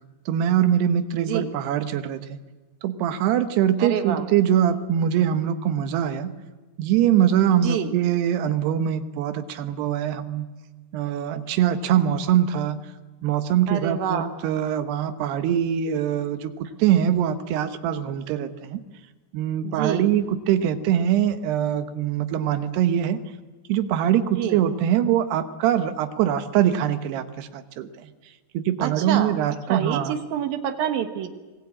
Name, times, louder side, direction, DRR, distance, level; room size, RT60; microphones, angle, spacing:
voice 1, 0.3-2.4 2.8-6.3 6.8-10.5 10.9-12.8 13.2-18.8 19.3-23.2 23.7-27.9 28.5-30.1, right 10 dB, 90° right, 10 dB, 3.3 m, -23 dB
voice 2, 1.2-1.5 3.8-4.3 7.6-7.9 13.7-14.3 19.6-20.1 24.3-24.6 28.8-29.4 29.7-31.3, right 9 dB, 70° right, 9 dB, 2.9 m, -27 dB
26.0 x 20.0 x 8.7 m, 1.2 s
omnidirectional pair, 4.6 m